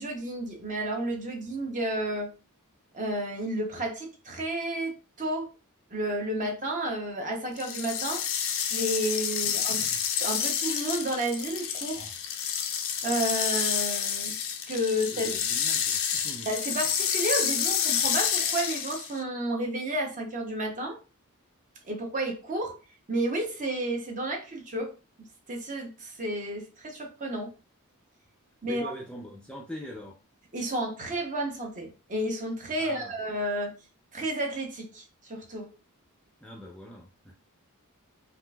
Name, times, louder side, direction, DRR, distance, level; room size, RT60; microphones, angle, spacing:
voice 1, 0.0-2.3 2.9-5.5 5.9-8.2 8.7-9.8 10.2-12.1 13.0-14.4 14.7-15.3 16.5-21.0 21.8-22.8 23.1-24.9 25.5-27.5 28.6-28.9 30.5-33.7 34.1-35.7, right 1 dB, 35° right, 1 dB, 0.8 m, -31 dB
sound 1, 7.6-19.2, left 8 dB, 60° left, 0.5 m, -29 dB
voice 2, 9.4-10.0 15.0-16.5 28.6-30.2 32.8-33.1 36.4-37.3, left 1 dB, 5° left, -2 dB, 0.4 m, -43 dB
3.7 x 2.5 x 2.3 m, 0.31 s
head